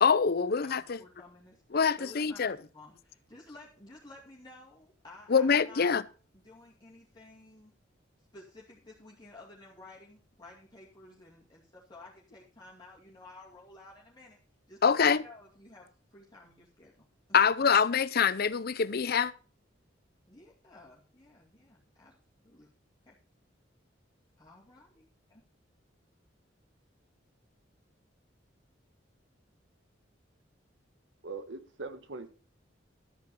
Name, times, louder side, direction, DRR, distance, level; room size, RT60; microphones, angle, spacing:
voice 1, 0.0-1.0 1.7-2.6 5.3-6.0 14.8-15.2 17.3-19.3, left 6 dB, 55° left, 0.6 m, -25 dB
voice 2, 0.6-1.6 2.0-5.9 6.4-7.7 8.3-14.4 14.7-15.0 15.2-15.9 16.1-16.9 20.3-22.1 22.4-22.7 23.1-23.2 24.4-25.4, left 2 dB, 25° left, 2.4 m, -53 dB
voice 3, 31.2-32.3, right 3 dB, 75° right, 1.5 m, -41 dB
13.0 x 8.5 x 4.2 m
head